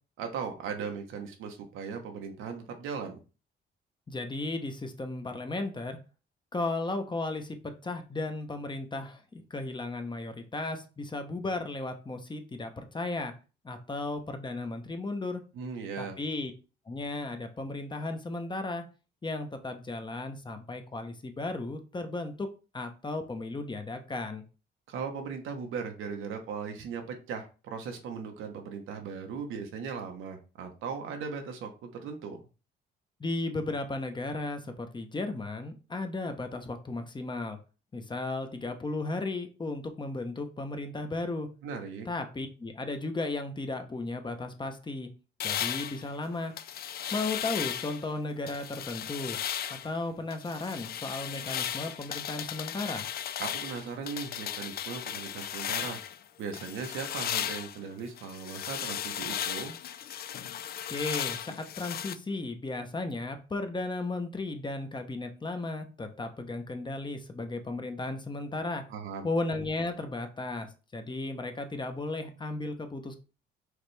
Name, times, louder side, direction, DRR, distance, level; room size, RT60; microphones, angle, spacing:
voice 1, 0.2-3.2 15.5-16.2 24.9-32.4 41.6-42.1 53.4-56.0 56.4-59.7 68.9-69.3, right 6 dB, 85° right, 4 dB, 1.0 m, -38 dB
voice 2, 4.1-6.0 6.5-13.3 13.6-15.4 16.0-16.5 16.9-18.8 19.2-22.5 22.7-24.4 33.2-37.6 37.9-41.5 42.1-45.1 45.4-46.5 47.1-49.4 49.7-53.1 60.9-68.8 69.2-73.2, left 2 dB, 25° left, 6 dB, 0.8 m, -35 dB
sound 1, 45.4-48.1 48.5-49.9 50.3-56.2 56.5-62.2, left 10 dB, 50° left, 0.4 m, -36 dB
4.9 x 3.2 x 3.3 m, 0.34 s
cardioid pair, 90°, 20 cm